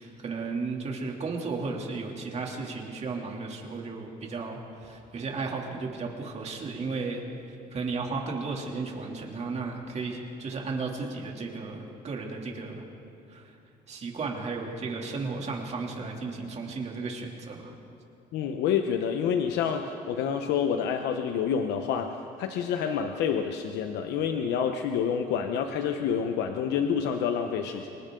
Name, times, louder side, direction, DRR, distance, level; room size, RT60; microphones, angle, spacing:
voice 1, 0.0-7.2 7.7-12.8 13.3-13.4 13.9-17.7, right 4 dB, 40° right, 0 dB, 2.9 m, -34 dB
voice 2, 18.3-22.1 22.4-27.9, left 7 dB, 85° left, 5 dB, 1.0 m, -28 dB
30.0 x 23.0 x 3.9 m, 2.8 s
cardioid pair, 110°, 17 cm